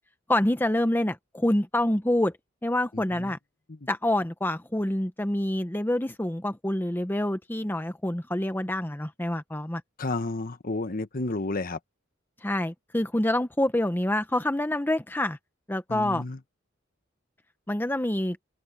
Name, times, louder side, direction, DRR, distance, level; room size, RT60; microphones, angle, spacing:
voice 1, 0.3-2.3 2.6-3.4 3.9-9.8 12.4-15.4 15.7-16.2 17.7-18.4, left 1 dB, 10° left, 0.8 m, -26 dB
voice 2, 2.9-3.3 3.7-3.8 10.0-11.8 15.9-16.4, left 2 dB, 45° left, 1.2 m, -31 dB
open air
head